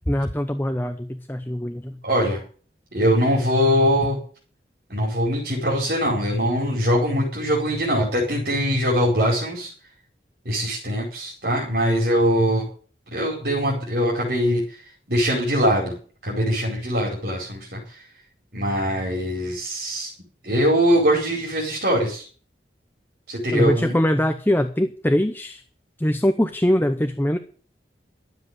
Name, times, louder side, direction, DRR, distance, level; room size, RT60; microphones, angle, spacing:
voice 1, 0.1-2.0 23.5-25.6 26.0-27.4, equal, 10° left, 8 dB, 0.8 m, -22 dB
voice 2, 2.0-2.4 2.9-4.2 4.9-9.7 10.4-12.7 13.1-14.6 15.1-15.9 16.2-17.8 18.5-20.1 20.4-22.2 23.3-23.9, equal, 60° right, -2 dB, 4.6 m, -22 dB
12.5 x 7.8 x 9.6 m, 0.42 s
head